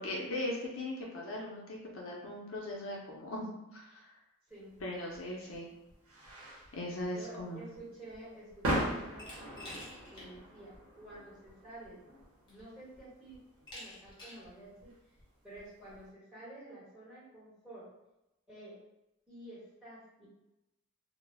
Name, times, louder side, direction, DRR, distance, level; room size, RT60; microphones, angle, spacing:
voice 1, 0.0-3.5 3.7-4.1 4.8-5.7 6.7-7.6, left 1 dB, 70° left, -3 dB, 0.6 m, -39 dB
voice 2, 4.5-4.8 7.1-9.9 10.1-12.0 12.5-13.4 13.7-14.9 15.4-17.9 18.5-18.8 19.3-20.3, right 1 dB, 5° right, -10 dB, 1.2 m, -51 dB
sound 1, 4.7-16.0, right 1 dB, 85° right, 0.8 m, -41 dB
Glass, 9.2-10.3 10.7-10.8 11.9-12.0 12.5-12.9 13.7-14.5, left 1 dB, 20° left, 0.7 m, -48 dB
2.2 x 2.0 x 3.3 m, 0.93 s
head